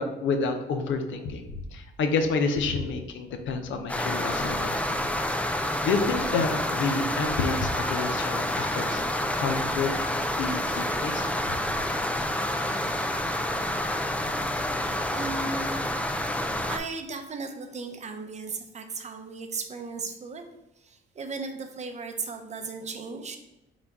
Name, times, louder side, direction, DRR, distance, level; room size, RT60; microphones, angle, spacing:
voice 1, 0.0-5.0 5.5-10.0 10.4-11.2, left 4 dB, 75° left, 6 dB, 0.6 m, -29 dB
sound 1, 3.9-16.8, left 1 dB, 5° left, 0.3 m, -28 dB
voice 2, 14.5-20.4 20.8-23.4, right 4 dB, 35° right, 5 dB, 0.6 m, -37 dB
4.0 x 2.3 x 4.6 m, 0.94 s
cardioid pair, 90°, 20 cm